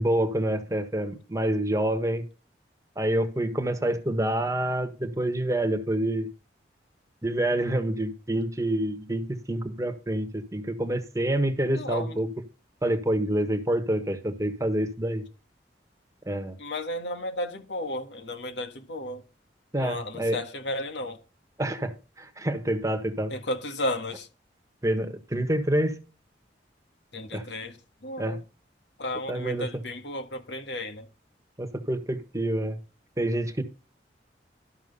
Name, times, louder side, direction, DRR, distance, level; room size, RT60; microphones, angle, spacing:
voice 1, 0.0-2.2 3.0-6.3 7.2-12.3 12.8-15.2 16.3-16.5 19.7-20.4 21.6-23.3 24.8-26.0 27.3-27.4 28.2-28.4 29.3-29.7 31.6-32.8 33.2-33.6, right 1 dB, 20° right, 1.4 m, -27 dB
voice 2, 11.7-12.2 16.6-19.2 19.8-21.2 23.3-24.3 27.1-28.4 29.0-31.1, left 1 dB, 85° left, 1.7 m, -33 dB
13.0 x 6.0 x 5.4 m
head